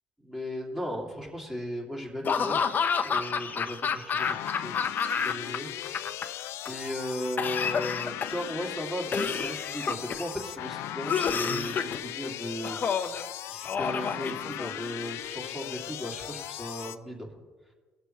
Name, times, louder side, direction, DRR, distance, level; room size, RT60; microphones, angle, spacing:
voice 1, 0.2-2.6 3.0-6.2 6.7-13.1 13.5-17.3, equal, 10° right, -1 dB, 2.5 m, -36 dB
Laughter / Cough, 2.2-5.6 5.8-6.7 7.4-8.5 9.1-10.3 11.1-12.0 12.6-13.2 13.7-14.9, left 6 dB, 40° left, 0.7 m, -29 dB
sound 1, 4.2-17.0, left 13 dB, 75° left, 0.4 m, -38 dB
18.0 x 6.7 x 3.2 m, 1.4 s
supercardioid pair, 80°, 5 cm